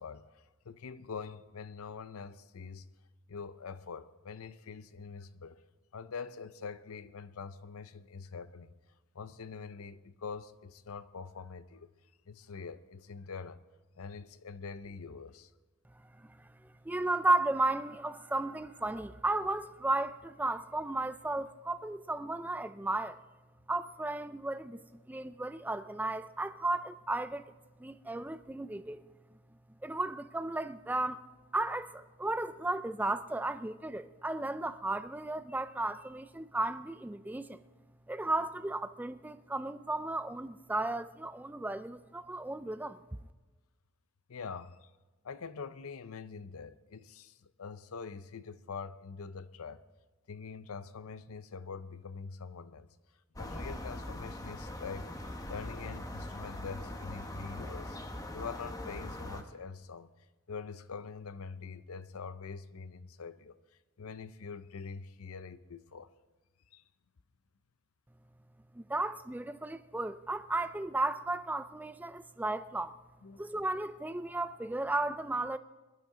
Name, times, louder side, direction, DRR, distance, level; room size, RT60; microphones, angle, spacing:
voice 1, 0.0-2.9 3.3-5.6 5.9-8.7 9.1-11.9 12.3-13.6 14.0-15.5 44.3-44.9 45.2-49.8 50.3-52.9 53.4-55.1 55.5-58.0 58.3-60.1 60.5-63.6 64.0-66.1 66.7-66.8 73.2-73.4, left 5 dB, 85° left, 0.6 m, -44 dB
voice 2, 16.2-23.2 23.7-27.5 27.8-29.0 29.8-31.2 31.5-37.6 38.1-43.0 68.7-73.0 73.4-75.6, right 2 dB, 10° right, 0.3 m, -34 dB
sound 1, 53.4-59.4, left 1 dB, 15° left, 1.0 m, -41 dB
21.5 x 12.0 x 3.7 m
head